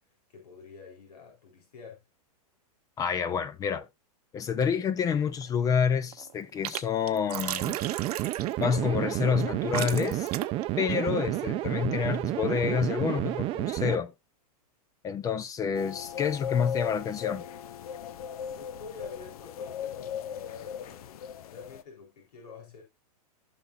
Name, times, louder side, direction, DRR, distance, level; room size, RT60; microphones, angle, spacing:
voice 1, 0.3-2.0 18.5-22.8, left 5 dB, 85° left, 3.8 m, -48 dB
voice 2, 3.0-3.9 4.3-7.8 8.6-10.3 10.8-14.1 15.0-17.4, left 7 dB, 15° left, 0.5 m, -28 dB
sound 1, 5.2-5.7 6.0-6.8 7.1-8.7 9.4-9.5 9.7-10.6, right 12 dB, 75° right, 0.9 m, -35 dB
sound 2, 7.6-13.9, right 16 dB, 25° right, 0.6 m, -30 dB
sound 3, 15.7-21.8, left 8 dB, 70° left, 0.7 m, -37 dB
15.0 x 5.7 x 2.5 m
hypercardioid pair, 145°, 20 cm